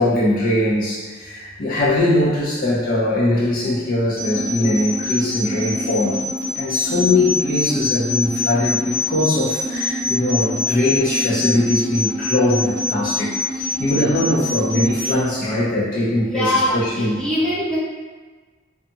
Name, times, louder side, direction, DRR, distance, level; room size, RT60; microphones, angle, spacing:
voice 1, 0.0-6.2 6.6-17.2, left 1 dB, 45° left, -6 dB, 0.5 m, -21 dB
sound 1, 4.2-15.2, left 2 dB, 30° left, 1.1 m, -25 dB
voice 2, 16.3-17.8, left 1 dB, 5° left, -10 dB, 0.7 m, -22 dB
2.7 x 2.3 x 2.6 m, 1.4 s
head